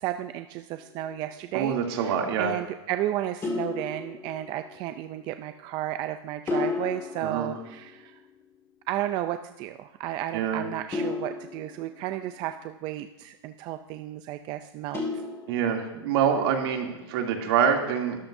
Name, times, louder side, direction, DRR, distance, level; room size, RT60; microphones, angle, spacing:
voice 1, 0.0-8.2 8.9-15.0, right 13 dB, 30° right, 9 dB, 0.4 m, -33 dB
sound 1, 0.7-1.2 3.4-4.9 6.5-8.4 10.9-12.6 14.9-16.1, left 3 dB, 15° left, 2.2 m, -34 dB
voice 2, 1.5-2.5 7.2-7.5 10.3-10.6 15.5-18.2, right 7 dB, 60° right, 1 dB, 2.7 m, -25 dB
22.5 x 13.0 x 2.7 m, 1.0 s
supercardioid pair, 155°, 15 cm